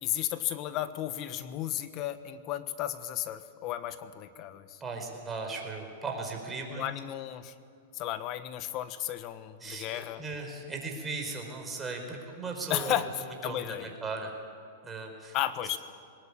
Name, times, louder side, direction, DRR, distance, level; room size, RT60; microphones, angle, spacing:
voice 1, 0.0-4.8 6.7-7.5 7.9-10.2 12.7-13.9 15.3-15.8, left 12 dB, 40° left, 12 dB, 1.3 m, -34 dB
voice 2, 4.8-6.8 9.6-12.9 13.4-14.3 14.8-15.4, right 3 dB, 15° right, 1 dB, 4.8 m, -37 dB
21.0 x 19.5 x 8.7 m, 2.3 s
hypercardioid pair, 130°, 0 cm